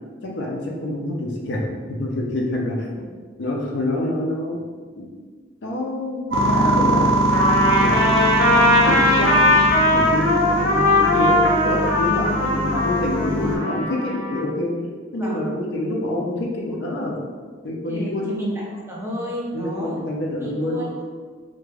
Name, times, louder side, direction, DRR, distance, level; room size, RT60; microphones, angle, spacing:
voice 1, 0.2-3.1 3.4-4.6 5.0-5.1 5.6-7.4 7.8-8.0 8.8-9.6 9.9-14.7 15.1-17.1 17.6-18.3 19.5-20.8, left 1 dB, 60° left, -1 dB, 0.4 m, -26 dB
sound 1, 6.3-13.6, right 1 dB, 75° right, 0.6 m, -22 dB
Trumpet, 7.3-14.4, left 1 dB, 85° left, 0.8 m, -19 dB
voice 2, 17.9-20.0 20.4-20.9, equal, 10° right, -4 dB, 0.3 m, -31 dB
2.3 x 2.2 x 3.1 m, 1.5 s
head